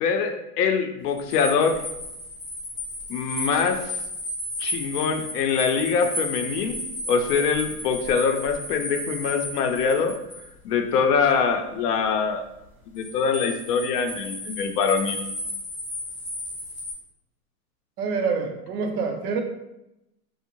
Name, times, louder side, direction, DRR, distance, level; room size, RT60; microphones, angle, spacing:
voice 1, 0.0-1.8 3.1-3.8 4.6-6.8 7.1-10.2 10.6-12.4 12.9-15.2, left 5 dB, 80° left, 6 dB, 0.5 m, -24 dB
sound 1, 1.1-10.5 12.9-16.9, left 1 dB, 20° left, 0.4 m, -34 dB
voice 2, 18.0-19.4, right 5 dB, 75° right, 5 dB, 0.6 m, -26 dB
2.6 x 2.1 x 2.9 m, 0.90 s
supercardioid pair, 155°, 47 cm